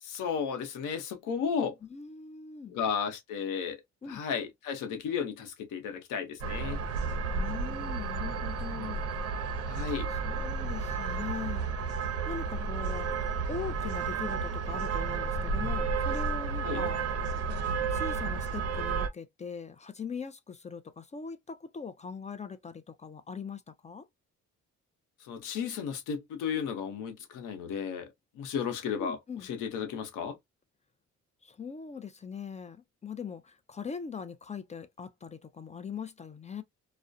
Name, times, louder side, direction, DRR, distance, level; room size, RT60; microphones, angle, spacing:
voice 1, 0.0-1.8 2.7-3.8 4.1-6.8 9.7-10.1 16.6-16.8 25.2-28.1 28.3-29.2 29.4-30.4, left 7 dB, 90° left, 0.9 m, -34 dB
voice 2, 1.8-2.8 4.0-4.2 7.3-9.0 10.1-11.7 12.3-13.1 13.5-17.0 17.9-24.1 29.0-29.5 31.4-36.6, left 6 dB, 25° left, 0.4 m, -41 dB
sound 1, 6.4-19.1, right 4 dB, 55° right, 0.6 m, -32 dB
2.3 x 2.1 x 2.5 m
cardioid pair, 90°, 30 cm